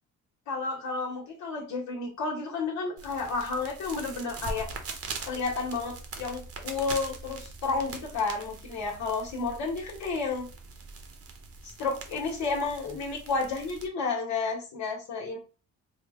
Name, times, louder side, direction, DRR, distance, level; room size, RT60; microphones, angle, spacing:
voice 1, 0.5-4.7 5.3-10.5 11.6-15.4, left 4 dB, 70° left, -1 dB, 1.2 m, -31 dB
sound 1, 3.0-13.9, right 3 dB, 50° right, 0.9 m, -42 dB
3.7 x 2.1 x 3.5 m, 0.33 s
cardioid pair, 90°, 30 cm